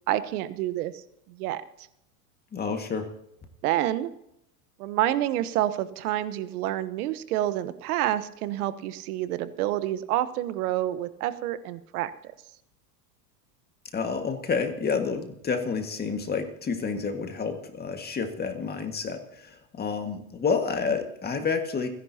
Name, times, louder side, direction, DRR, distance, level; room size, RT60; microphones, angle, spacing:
voice 1, 0.1-1.0 1.3-1.6 3.6-4.1 4.8-12.1, right 13 dB, 70° right, 13 dB, 1.2 m, -28 dB
voice 2, 2.5-3.1 13.9-21.9, left 5 dB, 20° left, 5 dB, 1.9 m, -29 dB
29.5 x 11.0 x 2.9 m, 0.80 s
supercardioid pair, 130°, 46 cm